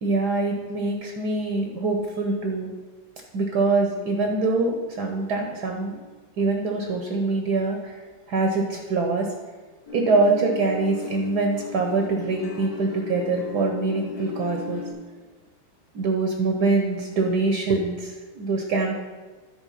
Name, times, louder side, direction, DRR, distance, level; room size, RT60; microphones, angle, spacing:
voice 1, 0.0-2.7 3.3-6.0 6.4-8.0 8.3-9.3 9.9-14.8 15.9-18.9, right 3 dB, 60° right, 3 dB, 1.2 m, -24 dB
sound 1, 9.9-14.9, left 6 dB, 30° left, 0.7 m, -35 dB
10.0 x 4.4 x 5.7 m, 1.3 s
omnidirectional pair, 2.3 m